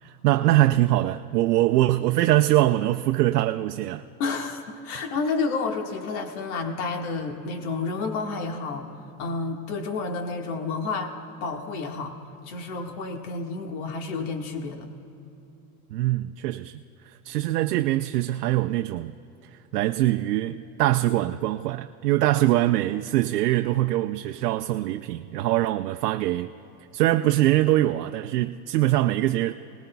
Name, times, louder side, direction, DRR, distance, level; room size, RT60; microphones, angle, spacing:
voice 1, 0.0-4.0 15.9-19.1 19.7-26.5 26.9-29.5, right 15 dB, 90° right, 0.5 m, -23 dB
voice 2, 4.2-8.9 9.2-11.1 11.4-12.1 12.4-14.9 22.3-22.6, left 4 dB, 65° left, 1.8 m, -30 dB
27.0 x 19.0 x 2.3 m
supercardioid pair, 110°, 46 cm